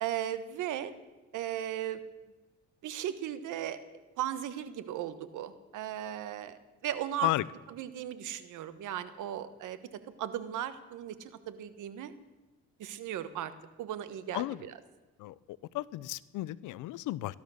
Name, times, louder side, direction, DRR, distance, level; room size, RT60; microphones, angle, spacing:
voice 1, 0.0-0.9 1.3-2.0 2.8-3.8 4.2-7.3 7.7-9.8 10.2-12.1 12.8-13.5 13.8-14.7, right 11 dB, 85° right, 12 dB, 1.3 m, -36 dB
voice 2, 15.2-17.4, left 17 dB, 90° left, 20 dB, 0.6 m, -33 dB
18.0 x 12.5 x 6.4 m, 1.2 s
cardioid pair, 90°, 30 cm